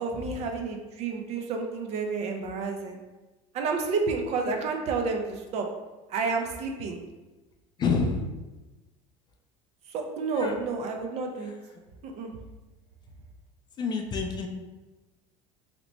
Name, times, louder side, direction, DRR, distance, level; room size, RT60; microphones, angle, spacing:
voice 1, 0.0-3.0 3.5-5.7 6.1-7.0 9.9-11.5 12.0-12.3, right 4 dB, 45° right, 3 dB, 0.5 m, -30 dB
voice 2, 7.8-8.2 10.3-10.5 11.4-11.5 13.8-14.5, left 4 dB, 30° left, 3 dB, 0.4 m, -28 dB
2.9 x 2.1 x 4.1 m, 1.1 s
supercardioid pair, 125°, 15 cm